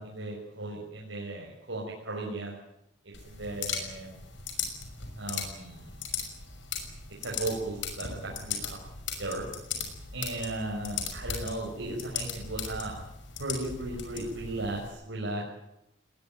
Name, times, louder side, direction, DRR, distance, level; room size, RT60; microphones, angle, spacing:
voice 1, 0.0-2.6 3.2-4.2 5.2-5.9 7.2-8.8 9.2-9.5 10.1-13.0 13.4-15.4, right 2 dB, 85° right, -3 dB, 5.9 m, -36 dB
sound 1, 3.1-14.9, left 6 dB, 75° left, 6.0 m, -38 dB
20.5 x 20.5 x 9.2 m, 0.83 s
head